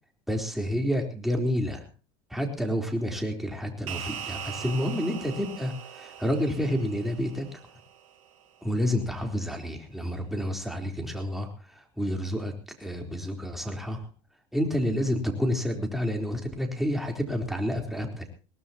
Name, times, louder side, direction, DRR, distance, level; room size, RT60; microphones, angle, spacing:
voice 1, 0.3-1.8 2.3-7.5 8.6-11.5 12.0-12.5 12.8-14.0 14.5-18.3, equal, ahead, 2 dB, 3.9 m, -29 dB
sound 1, 3.9-8.5, right 9 dB, 90° right, 1.7 m, -41 dB
21.0 x 18.5 x 3.0 m, 0.33 s
supercardioid pair, 95°, 17 cm